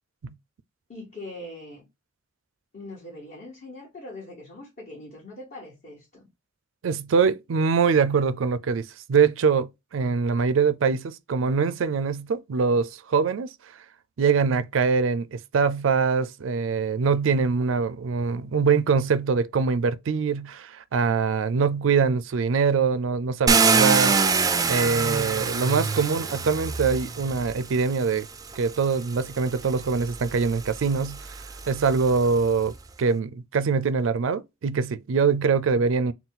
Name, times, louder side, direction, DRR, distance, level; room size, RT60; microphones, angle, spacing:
voice 1, 0.9-1.9 2.7-6.3, left 1 dB, 45° left, 1.9 m, -41 dB
voice 2, 6.8-13.5 14.2-24.4 24.7-28.3 28.6-31.2 31.7-32.7 33.0-36.1, right 5 dB, 85° right, 0.4 m, -23 dB
Car, 23.5-27.6 28.5-28.6 29.2-32.4, right 4 dB, 20° right, 0.4 m, -25 dB
4.0 x 2.3 x 3.7 m
head